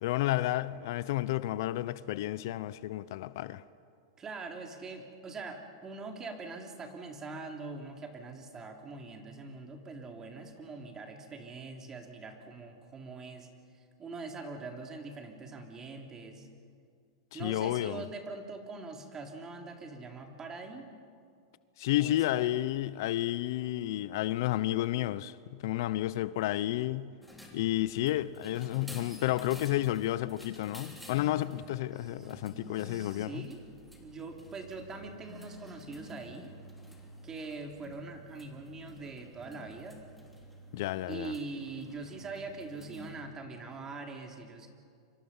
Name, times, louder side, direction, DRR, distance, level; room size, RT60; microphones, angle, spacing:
voice 1, 0.0-3.6 17.3-18.0 21.8-27.1 27.5-33.5 40.7-41.3, left 15 dB, 65° left, 0.7 m, -31 dB
voice 2, 4.2-13.5 13.7-16.5 17.3-20.8 21.9-22.6 31.9-32.4 32.7-33.7 33.9-36.5 37.2-40.0 41.1-44.7, right 3 dB, 25° right, 3.4 m, -43 dB
sound 1, 27.2-43.2, left 1 dB, ahead, 3.3 m, -50 dB
29.5 x 25.0 x 5.6 m
hypercardioid pair, 120°, 2 cm